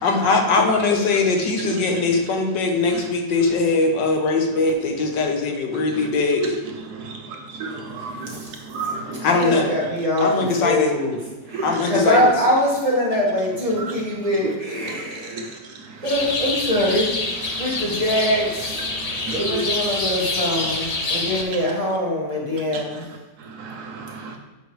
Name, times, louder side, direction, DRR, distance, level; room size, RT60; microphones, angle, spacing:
voice 1, 0.0-6.5 9.2-9.8 10.2-10.9 11.6-12.3, left 3 dB, 80° left, 3 dB, 1.6 m, -21 dB
voice 2, 6.9-8.4 8.7-9.3 11.5-11.6 14.4-14.5 15.3-15.4 19.3-19.6 22.7-22.8 23.6-24.4, right 3 dB, 65° right, 3 dB, 1.2 m, -31 dB
voice 3, 8.8-11.2 11.5-15.6 16.0-17.1 17.5-18.8 19.3-23.0, equal, 20° right, -4 dB, 1.6 m, -23 dB
sound 1, 16.0-21.4, left 3 dB, 65° left, 0.3 m, -26 dB
8.0 x 5.2 x 3.2 m, 1.2 s
omnidirectional pair, 1.9 m